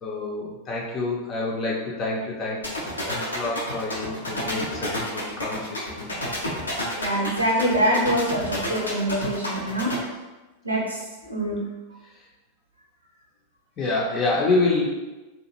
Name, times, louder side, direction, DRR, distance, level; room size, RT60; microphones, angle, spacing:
voice 1, 0.0-6.4 13.8-14.9, left 3 dB, 30° left, -3 dB, 0.6 m, -27 dB
sound 1, 2.6-9.9, left 1 dB, 80° left, 0.6 m, -30 dB
voice 2, 7.0-10.0 10.6-11.6, right 1 dB, 85° right, -3 dB, 0.7 m, -25 dB
2.7 x 2.5 x 2.8 m, 1.1 s
figure-of-eight pair, 90°, 0 cm